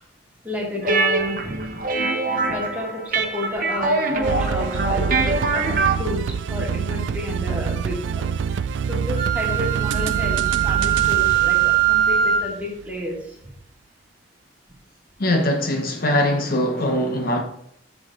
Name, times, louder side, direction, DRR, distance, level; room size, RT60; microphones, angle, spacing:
voice 1, 0.4-1.8 2.2-8.2 8.5-13.6, left 1 dB, 10° right, 2.3 m, -31 dB
sound 1, 0.8-5.9, right 3 dB, 50° right, 0.9 m, -23 dB
sound 2, 4.2-12.7, right 6 dB, 75° right, 0.3 m, -26 dB
Wind instrument woodwind instrument, 9.1-12.5, right 11 dB, 30° left, 3.5 m, -21 dB
voice 2, 15.2-17.4, left 1 dB, 50° left, 0.9 m, -21 dB
7.7 x 7.2 x 3.7 m
head